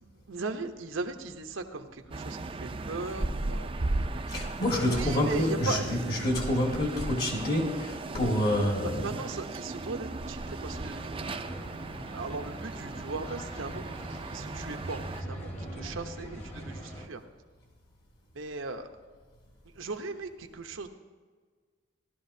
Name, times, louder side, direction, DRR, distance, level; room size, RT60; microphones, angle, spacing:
voice 1, 0.0-3.9 4.9-6.0 9.0-11.1 12.1-15.0 15.3-17.2 18.3-18.9 19.7-20.9, right 3 dB, 85° right, 5 dB, 0.9 m, -38 dB
sound 1, 2.1-15.2, right 2 dB, 30° right, 0.4 m, -37 dB
voice 2, 4.3-9.1, left 1 dB, 50° left, 0 dB, 2.0 m, -28 dB
sound 2, 10.4-17.1, equal, 30° left, 1.2 m, -42 dB
16.0 x 11.5 x 2.7 m, 1.5 s
head